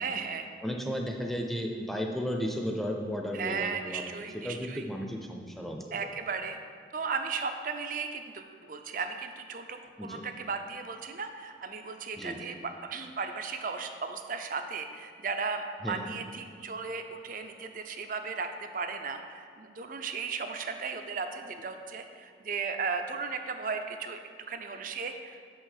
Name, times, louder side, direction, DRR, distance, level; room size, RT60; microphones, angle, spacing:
voice 1, 0.0-0.5 3.3-4.8 5.9-6.6 6.9-24.2 24.5-25.4, right 5 dB, 45° right, 6 dB, 0.5 m, -36 dB
voice 2, 0.6-4.1 4.3-5.8 10.0-10.2 12.1-12.4 15.8-16.0, equal, ahead, 1 dB, 0.6 m, -34 dB
6.3 x 5.5 x 6.5 m, 2.2 s
head